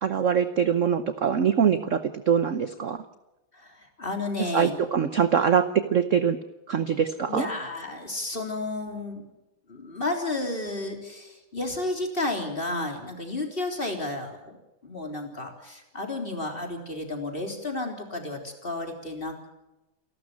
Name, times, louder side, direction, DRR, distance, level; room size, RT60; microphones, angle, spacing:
voice 1, 0.0-3.0 4.5-6.4 6.7-7.5, right 7 dB, 50° right, 11 dB, 1.0 m, -23 dB
voice 2, 3.5-4.8 7.3-9.2 9.7-14.6 14.8-19.5, left 2 dB, 25° left, 3 dB, 3.8 m, -32 dB
28.5 x 13.0 x 8.5 m, 1.0 s
omnidirectional pair, 2.2 m